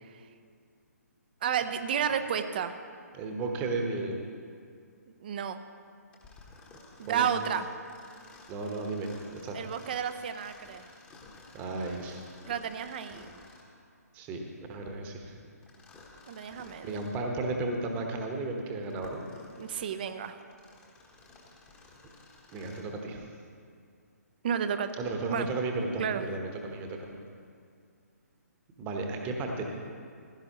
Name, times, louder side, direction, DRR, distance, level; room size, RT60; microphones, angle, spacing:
voice 1, 1.4-2.7 5.2-5.6 7.0-7.7 9.5-10.9 12.5-13.3 16.3-17.0 19.6-20.4 24.4-24.9 25.3-25.5 26.0-26.2, right 8 dB, 35° right, 10 dB, 0.6 m, -31 dB
voice 2, 3.1-4.1 7.1-7.3 8.5-9.6 11.5-12.2 14.1-15.4 16.8-19.2 22.5-23.2 25.0-27.2 28.8-29.6, right 3 dB, 15° right, 2 dB, 1.1 m, -34 dB
Mechanisms, 6.1-13.8 15.6-17.2 17.8-17.9 18.6-23.0, left 3 dB, 10° left, 1.1 m, -53 dB
15.5 x 12.0 x 3.0 m, 2.3 s
figure-of-eight pair, 135°, 9 cm